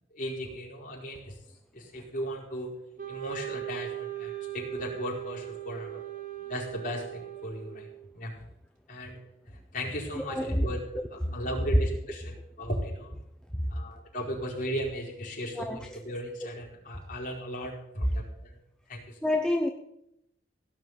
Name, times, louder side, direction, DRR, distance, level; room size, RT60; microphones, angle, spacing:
voice 1, 0.1-1.3 1.7-2.7 3.1-6.0 6.5-7.9 8.1-8.3 8.9-9.2 9.7-13.2 13.7-18.6 18.9-19.2, equal, 45° left, -4 dB, 4.8 m, -36 dB
Wind instrument woodwind instrument, 3.0-8.1, right 13 dB, 45° right, 2.5 m, -39 dB
voice 2, 10.2-10.7 11.3-11.4 15.5-16.0 19.2-19.7, left 1 dB, 5° left, 2 dB, 0.8 m, -28 dB
17.0 x 5.8 x 9.5 m, 0.79 s
head